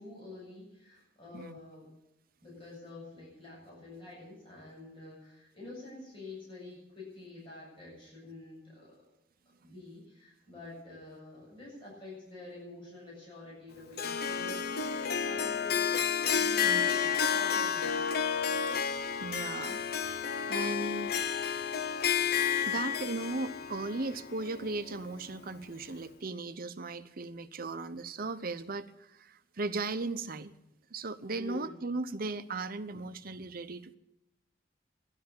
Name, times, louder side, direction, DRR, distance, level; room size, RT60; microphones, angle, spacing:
voice 1, 0.0-1.9 2.4-9.0 9.6-18.1 31.4-31.8, left 2 dB, 30° left, -5 dB, 7.7 m, -48 dB
Harp, 14.0-25.2, left 7 dB, 60° left, 0.8 m, -31 dB
voice 2, 19.2-20.1 20.5-21.2 22.6-30.5 30.9-34.0, right 3 dB, 55° right, 11 dB, 0.8 m, -37 dB
13.0 x 11.5 x 8.6 m, 0.89 s
head